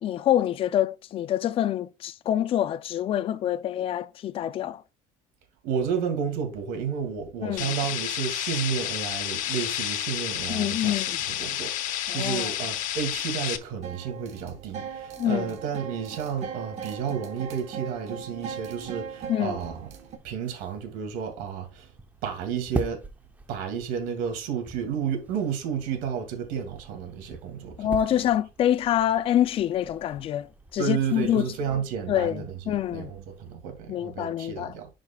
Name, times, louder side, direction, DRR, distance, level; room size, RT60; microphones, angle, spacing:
voice 1, 0.0-4.8 7.4-7.7 10.5-11.2 12.1-12.5 15.2-15.5 19.3-19.6 27.8-31.4 32.1-33.1 33.9-34.7, left 11 dB, 40° left, 0.4 m, -26 dB
voice 2, 5.6-10.9 11.3-19.9 20.2-21.9 22.2-23.0 23.5-28.2 30.8-34.9, right 7 dB, 90° right, 2.4 m, -31 dB
sound 1, 7.6-13.6, left 12 dB, 65° left, 0.9 m, -30 dB
sound 2, 13.8-20.2, right 7 dB, 50° right, 1.4 m, -39 dB
sound 3, 18.7-33.6, right 2 dB, 10° right, 0.7 m, -42 dB
11.0 x 5.1 x 2.3 m
cardioid pair, 140°, 14 cm